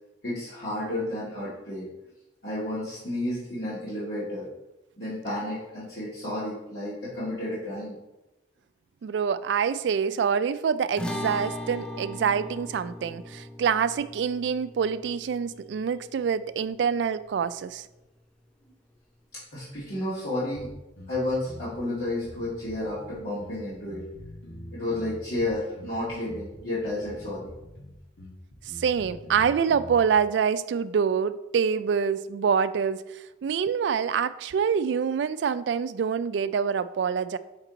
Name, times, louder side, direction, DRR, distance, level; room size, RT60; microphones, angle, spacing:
voice 1, 0.2-1.9 2.4-4.5 5.0-8.0 19.3-20.7 21.1-24.1 24.7-27.5, left 1 dB, 60° left, 1.9 m, -31 dB
voice 2, 9.0-17.8 28.8-33.0 33.4-37.4, right 6 dB, 70° right, 0.3 m, -26 dB
sound 1, 11.0-17.5, left 1 dB, 5° left, 0.4 m, -39 dB
sound 2, 20.5-30.1, equal, 80° left, 1.4 m, -45 dB
5.9 x 4.5 x 3.9 m
head